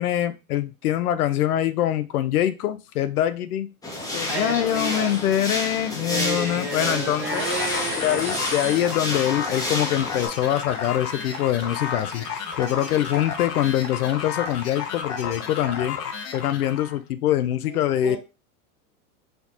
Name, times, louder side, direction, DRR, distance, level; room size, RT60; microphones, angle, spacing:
voice 1, 0.0-3.7 4.1-7.4 8.0-16.0 16.3-18.2, left 12 dB, 80° left, 11 dB, 0.6 m, -24 dB
sound 1, 3.8-10.3, left 1 dB, 10° left, 0.8 m, -30 dB
voice 2, 4.2-5.2 6.0-8.5 17.7-18.2, right 2 dB, 25° right, -7 dB, 1.5 m, -31 dB
Cheering / Applause, 6.5-16.1, right 3 dB, 80° right, 1.5 m, -43 dB
sound 2, 7.2-17.0, left 7 dB, 35° left, 0.8 m, -32 dB
4.3 x 2.3 x 2.8 m, 0.29 s
hypercardioid pair, 100°, 44 cm